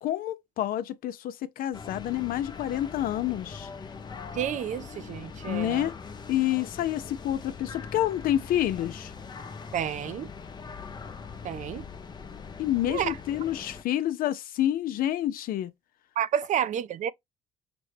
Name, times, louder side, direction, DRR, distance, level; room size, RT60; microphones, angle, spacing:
voice 1, 0.0-3.7 5.5-6.0 6.3-9.1 12.6-15.7, left 12 dB, 70° left, 0.5 m, -28 dB
sound 1, 1.7-13.8, left 5 dB, 30° left, 0.6 m, -42 dB
voice 2, 4.3-5.9 9.7-10.3 11.4-11.9 12.9-13.1 16.2-17.1, right 9 dB, 55° right, 0.4 m, -30 dB
5.9 x 2.2 x 3.3 m
cardioid pair, 90°, 15 cm